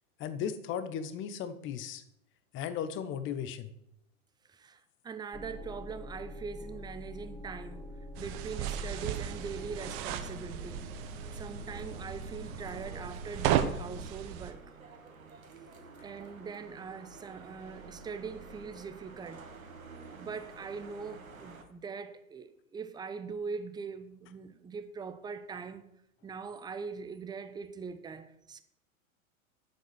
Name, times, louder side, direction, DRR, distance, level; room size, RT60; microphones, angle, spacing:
voice 1, 0.2-2.0 2.5-3.7, left 8 dB, 30° left, 1.1 m, -36 dB
voice 2, 4.5-7.8 8.2-10.9 11.3-14.6 16.0-19.5 20.2-25.8 26.2-28.6, right 5 dB, 10° right, 0.8 m, -42 dB
sound 1, 5.3-14.1, left 1 dB, 5° left, 1.1 m, -45 dB
sound 2, 8.1-14.5, right 10 dB, 40° right, 1.1 m, -35 dB
sound 3, 10.1-21.6, right 4 dB, 75° right, 2.0 m, -51 dB
11.0 x 7.5 x 6.2 m
figure-of-eight pair, 100°, 42 cm